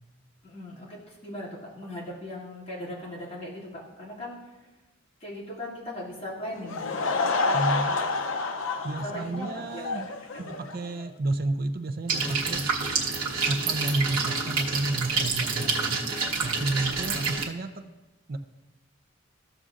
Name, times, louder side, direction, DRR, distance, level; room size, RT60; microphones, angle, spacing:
voice 1, 0.4-4.6 5.2-7.2 9.0-10.0 10.3-10.6, left 1 dB, 30° left, -7 dB, 2.5 m, -39 dB
Laughter / Crowd, 6.5-11.1, left 3 dB, 65° left, 0.6 m, -29 dB
voice 2, 7.5-8.0 8.8-10.1 10.5-12.6 13.5-16.0 16.4-17.7 18.3-18.4, right 2 dB, 45° right, 8 dB, 0.6 m, -31 dB
sound 1, 12.1-17.4, right 4 dB, 80° right, 1.2 m, -28 dB
15.0 x 6.6 x 2.5 m, 1.1 s
head